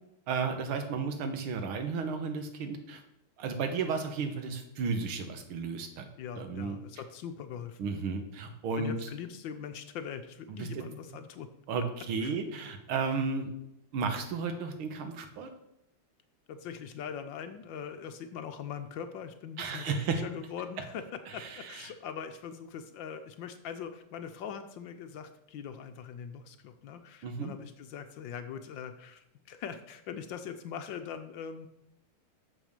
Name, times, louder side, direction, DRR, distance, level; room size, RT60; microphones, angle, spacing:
voice 1, 0.3-3.0 3.4-6.1 6.3-6.8 7.8-8.9 10.6-10.7 11.7-13.5 13.9-15.5 19.6-20.2 21.4-21.9 27.2-27.5, right 5 dB, 80° right, 6 dB, 2.0 m, -33 dB
voice 2, 6.2-7.9 8.8-11.5 12.2-12.4 16.5-31.7, left 7 dB, 70° left, 8 dB, 1.3 m, -42 dB
6.9 x 6.2 x 6.5 m, 0.87 s
omnidirectional pair, 2.3 m